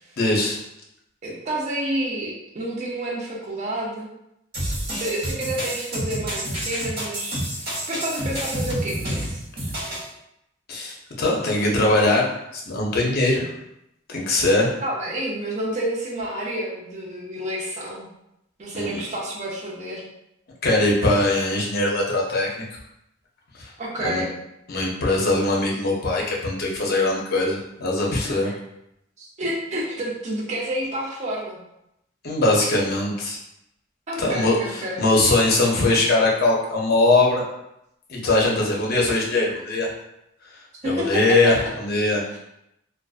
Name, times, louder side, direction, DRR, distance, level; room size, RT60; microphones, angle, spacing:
voice 1, 0.2-0.6 10.7-13.5 14.1-14.7 18.7-19.0 20.6-22.6 23.5-23.7 24.0-24.2 24.7-28.5 32.2-33.4 34.2-37.4 38.1-39.9 40.8-42.2, left 2 dB, 50° left, -2 dB, 0.6 m, -21 dB
voice 2, 1.2-4.1 5.0-7.4 7.9-9.4 14.8-18.1 18.6-20.0 23.8-24.3 28.2-28.5 29.2-31.6 34.1-35.1 40.8-41.5 42.3-42.4, right 1 dB, 35° right, -4 dB, 0.5 m, -29 dB
sound 1, 4.5-10.1, right 1 dB, 55° right, 0.9 m, -29 dB
2.4 x 2.2 x 2.3 m, 0.83 s
head